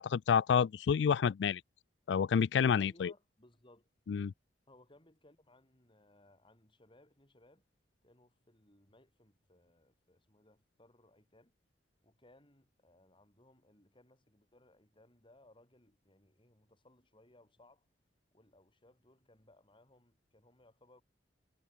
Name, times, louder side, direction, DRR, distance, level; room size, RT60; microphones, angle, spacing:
voice 1, 0.0-1.6 2.1-3.1 4.1-4.3, left 7 dB, 75° left, 0.3 m, -29 dB
voice 2, 2.7-3.9 4.7-7.7 8.0-11.5 12.0-17.9 18.3-21.0, left 1 dB, 30° left, 7.0 m, -64 dB
head